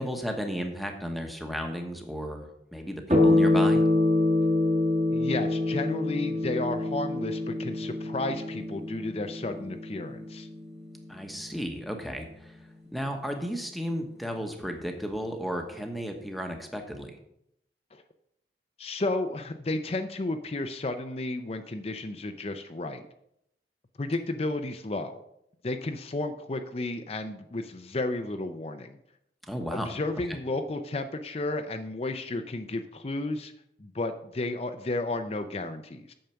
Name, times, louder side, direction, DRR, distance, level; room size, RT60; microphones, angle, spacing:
voice 1, 0.0-3.8 11.1-12.6 12.9-17.2 29.5-30.0, equal, ahead, 3 dB, 1.1 m, -34 dB
sound 1, 3.1-12.0, left 2 dB, 40° right, 1.8 m, -26 dB
voice 2, 5.1-10.5 17.9-18.0 18.8-23.0 24.0-25.2 25.6-29.0 29.7-33.5 33.8-36.1, left 2 dB, 35° left, 7 dB, 0.5 m, -32 dB
9.1 x 6.5 x 5.7 m, 0.78 s
head